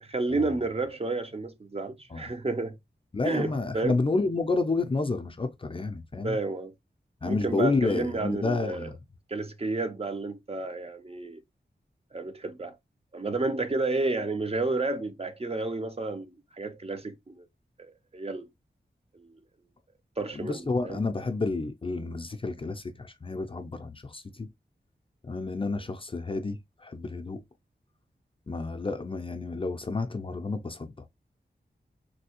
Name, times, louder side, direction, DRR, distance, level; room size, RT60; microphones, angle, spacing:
voice 1, 0.0-2.8 3.2-4.0 6.2-6.7 7.2-8.9 9.3-11.4 12.1-12.7 13.1-17.5 17.8-18.4 20.2-21.0, right 3 dB, 35° right, 0.5 m, -31 dB
voice 2, 3.1-6.4 7.2-9.0 20.3-24.5 25.2-27.4 28.5-30.9, left 3 dB, 30° left, 0.4 m, -30 dB
3.3 x 2.7 x 2.8 m
wide cardioid pair, 105°, 18 cm